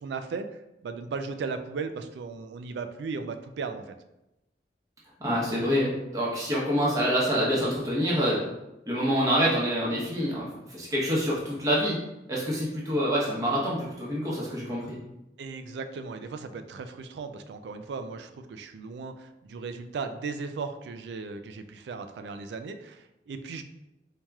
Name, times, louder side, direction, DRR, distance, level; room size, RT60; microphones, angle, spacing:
voice 1, 0.0-4.0 13.5-13.6 15.4-23.6, right 4 dB, 75° right, 8 dB, 0.3 m, -36 dB
voice 2, 5.2-8.4 8.9-12.0 12.3-15.0, equal, 20° right, -5 dB, 0.8 m, -26 dB
4.6 x 2.8 x 2.3 m, 0.94 s
head